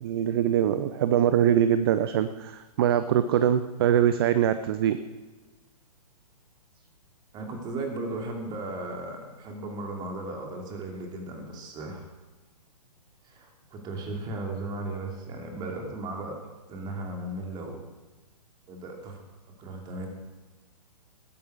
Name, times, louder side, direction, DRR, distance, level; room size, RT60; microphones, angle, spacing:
voice 1, 0.0-5.0, right 10 dB, 35° right, 12 dB, 0.6 m, -23 dB
voice 2, 7.3-12.1 13.2-16.4 16.7-17.8 18.7-19.2 19.6-20.1, right 2 dB, 20° right, 2 dB, 2.6 m, -36 dB
20.0 x 9.6 x 4.7 m, 1.2 s
figure-of-eight pair, 120°, 21 cm